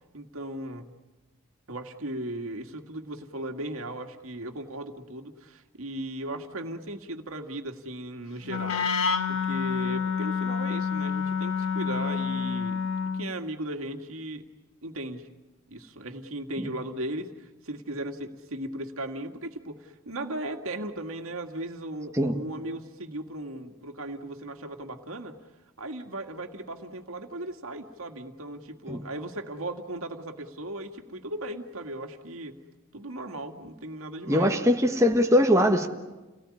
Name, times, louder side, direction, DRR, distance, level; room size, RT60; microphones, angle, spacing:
voice 1, 0.1-0.8 1.7-8.9 9.3-12.8 13.1-14.5 14.8-15.3 15.7-25.4 25.8-32.5 32.9-34.5, right 1 dB, 80° right, 5 dB, 2.0 m, -37 dB
Wind instrument woodwind instrument, 8.4-13.3, left 6 dB, 80° left, 1.4 m, -28 dB
voice 2, 34.3-35.9, equal, 15° right, 2 dB, 1.4 m, -21 dB
30.0 x 18.5 x 9.8 m, 1.2 s
head